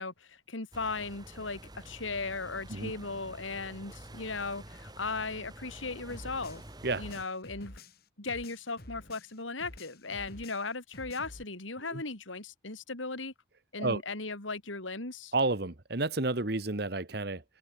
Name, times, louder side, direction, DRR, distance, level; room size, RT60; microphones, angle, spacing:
voice 1, 0.0-6.6 7.0-7.8 8.2-13.3 13.7-15.3, left 3 dB, 85° left, 3.6 m, -37 dB
sound 1, 0.7-7.2, right 1 dB, 20° right, 4.9 m, -49 dB
sound 2, 6.1-9.4 9.6-11.4, left 1 dB, 50° left, 3.6 m, -49 dB
voice 2, 15.3-17.4, right 2 dB, 55° right, 1.4 m, -30 dB
head